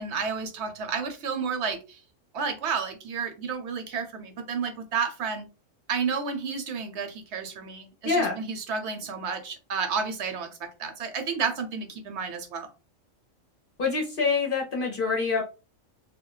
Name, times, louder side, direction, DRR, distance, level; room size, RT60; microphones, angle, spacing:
voice 1, 0.0-2.0 2.3-5.5 5.9-12.7, right 5 dB, 65° right, 7 dB, 0.8 m, -31 dB
voice 2, 8.0-8.4 13.8-15.4, left 4 dB, 55° left, 1 dB, 0.7 m, -25 dB
2.2 x 2.2 x 3.8 m, 0.31 s
omnidirectional pair, 1.3 m